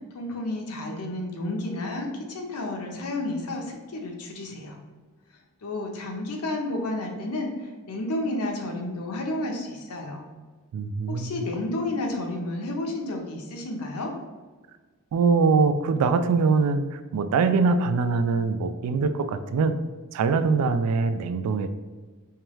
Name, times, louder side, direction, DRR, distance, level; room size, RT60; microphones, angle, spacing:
voice 1, 0.1-4.8 5.6-10.3 11.1-14.1, left 2 dB, 75° left, 2 dB, 0.7 m, -31 dB
voice 2, 10.7-11.4 15.1-19.8 20.1-21.7, right 4 dB, 75° right, 9 dB, 0.3 m, -23 dB
4.5 x 2.3 x 3.0 m, 1.4 s
head